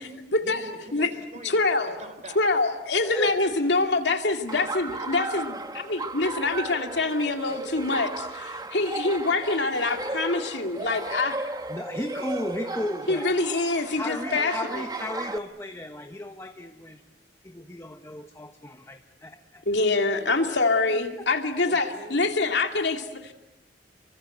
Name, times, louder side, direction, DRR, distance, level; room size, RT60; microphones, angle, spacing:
voice 1, 0.0-1.7 2.0-2.7 3.0-3.7 12.2-12.4 12.8-12.9 20.2-20.6 21.7-22.7, right 2 dB, 40° right, 8 dB, 4.2 m, -44 dB
voice 2, 1.4-2.0 2.4-11.4 13.1-14.9 19.7-23.3, left 3 dB, 75° left, 4 dB, 2.5 m, -25 dB
voice 3, 3.0-3.7 5.9-6.0 8.3-8.7 11.7-13.3 13.9-17.0 17.4-19.6 20.9-21.0 21.4-21.5, left 1 dB, 15° left, 6 dB, 1.2 m, -35 dB
Laughter, 4.5-15.4, right 2 dB, 20° right, 1.2 m, -35 dB
29.0 x 24.0 x 8.0 m, 0.93 s
head